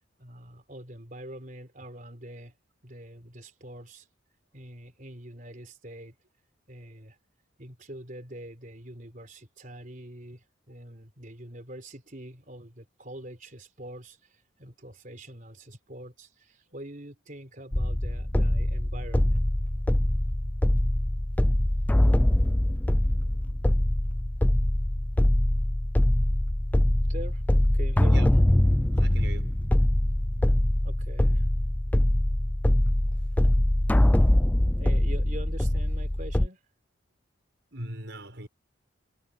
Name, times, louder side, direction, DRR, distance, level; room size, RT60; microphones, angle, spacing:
voice 1, 0.2-2.6 2.8-4.1 4.5-6.2 6.7-7.2 7.6-19.4 27.1-27.4 27.7-28.3 30.8-31.5 34.8-36.6, right 1 dB, 40° right, 3.9 m, -44 dB
sound 1, 17.7-36.5, left 1 dB, 10° left, 0.3 m, -23 dB
voice 2, 28.9-29.8 33.1-33.3 37.7-38.5, right 1 dB, 60° right, 6.3 m, -40 dB
head